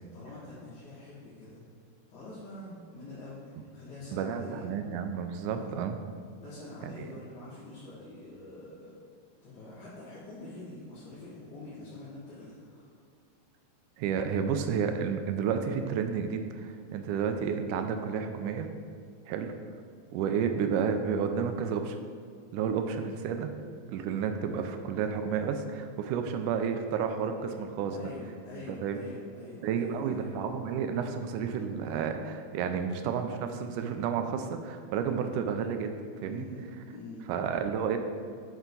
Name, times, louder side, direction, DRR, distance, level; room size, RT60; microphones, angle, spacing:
voice 1, 0.1-1.6 2.1-4.7 5.5-5.8 6.4-8.9 9.4-13.0 22.9-23.0 27.9-30.4 36.2-37.3, left 2 dB, 70° left, -10 dB, 2.9 m, -45 dB
voice 2, 4.1-6.0 6.8-7.1 14.0-18.7 19.3-19.5 20.1-22.0 22.5-23.5 23.9-28.1 28.7-29.0 29.6-36.5 37.3-38.0, right 7 dB, 80° right, 7 dB, 2.0 m, -31 dB
8.1 x 5.7 x 3.8 m, 2.2 s
omnidirectional pair, 3.7 m